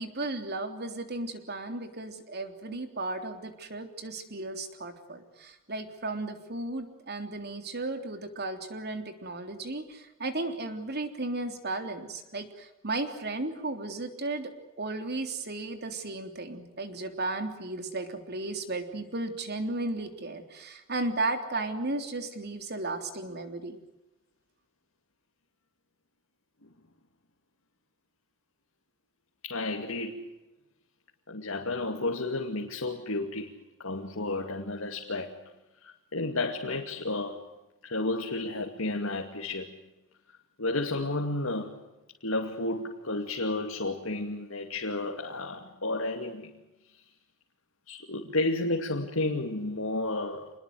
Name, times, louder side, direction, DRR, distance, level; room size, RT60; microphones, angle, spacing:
voice 1, 0.0-14.5 14.8-23.8, right 2 dB, 50° right, 3.4 m, -35 dB
voice 2, 29.4-30.3 31.3-33.5 33.8-35.4 35.8-37.4 37.8-39.8 40.6-41.8 42.2-46.5 47.9-50.5, left 2 dB, 85° left, 2.5 m, -32 dB
27.5 x 21.0 x 7.9 m
head